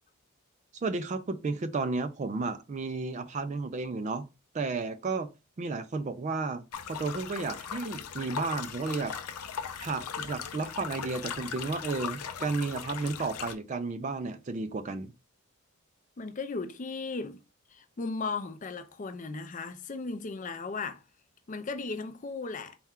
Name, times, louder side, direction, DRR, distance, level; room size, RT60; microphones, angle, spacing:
voice 1, 0.8-4.3 4.5-5.3 5.6-9.1 9.8-15.1, right 3 dB, 30° right, 0.3 m, -33 dB
sound 1, 6.7-13.5, left 7 dB, 90° left, 0.5 m, -38 dB
voice 2, 16.2-17.4 17.7-21.0 21.5-22.8, left 4 dB, 35° left, 0.4 m, -36 dB
4.2 x 2.3 x 3.5 m
head